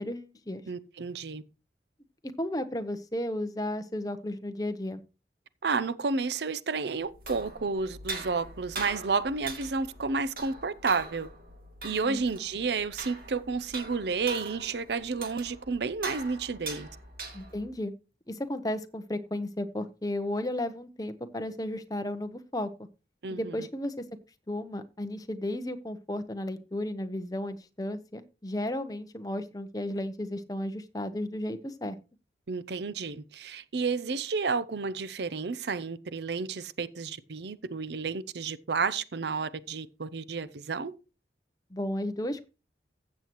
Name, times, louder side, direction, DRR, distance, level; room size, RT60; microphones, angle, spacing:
voice 1, 0.0-0.6 2.4-5.0 11.9-12.2 17.3-17.9 18.3-22.7 23.3-24.0 24.5-32.0 41.7-42.5, left 1 dB, 20° left, 0.8 m, -34 dB
voice 2, 0.7-1.4 5.6-11.3 11.8-16.9 23.2-23.7 32.5-40.9, right 4 dB, 75° right, 0.6 m, -31 dB
sound 1, 7.0-17.7, right 3 dB, 55° right, 2.7 m, -42 dB
15.0 x 7.6 x 3.0 m
head